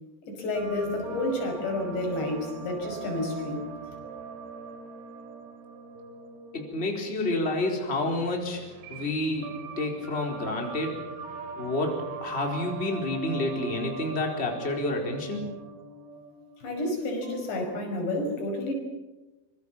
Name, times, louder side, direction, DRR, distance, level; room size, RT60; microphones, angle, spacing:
voice 1, 0.3-3.7 16.6-18.7, left 2 dB, 90° left, 2 dB, 7.9 m, -30 dB
sound 1, 0.5-17.8, right 5 dB, 70° right, 4.5 m, -42 dB
voice 2, 6.5-8.6 8.9-10.9 11.6-11.9 12.2-15.4, left 2 dB, 15° left, 1 dB, 4.2 m, -29 dB
25.0 x 24.0 x 7.3 m, 1.1 s
omnidirectional pair, 4.9 m